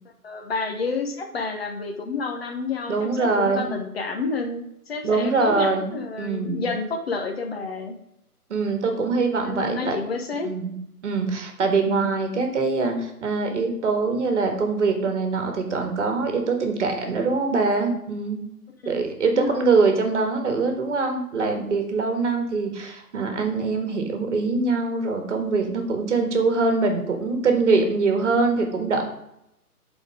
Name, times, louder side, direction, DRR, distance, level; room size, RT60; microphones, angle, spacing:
voice 1, 0.2-7.9 9.4-10.5 11.8-12.1 18.8-19.6, left 4 dB, 40° left, 4 dB, 0.9 m, -30 dB
voice 2, 2.9-3.7 5.0-6.7 8.5-10.0 10.4-10.8 11.0-18.4 18.8-29.0, right 4 dB, 50° right, 4 dB, 1.7 m, -23 dB
8.0 x 4.2 x 4.9 m, 0.81 s
figure-of-eight pair, 145°, 47 cm